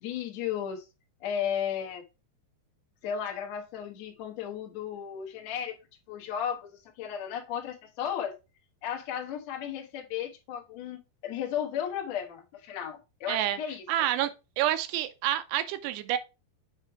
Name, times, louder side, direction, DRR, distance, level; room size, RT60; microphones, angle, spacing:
voice 1, 0.0-0.9 1.2-2.0 3.0-5.8 6.1-8.3 8.8-13.8, left 9 dB, 70° left, 1.6 m, -34 dB
voice 2, 13.3-13.6 13.9-14.3 14.6-16.2, right 12 dB, 85° right, 2.7 m, -28 dB
7.5 x 3.2 x 4.6 m
omnidirectional pair, 4.8 m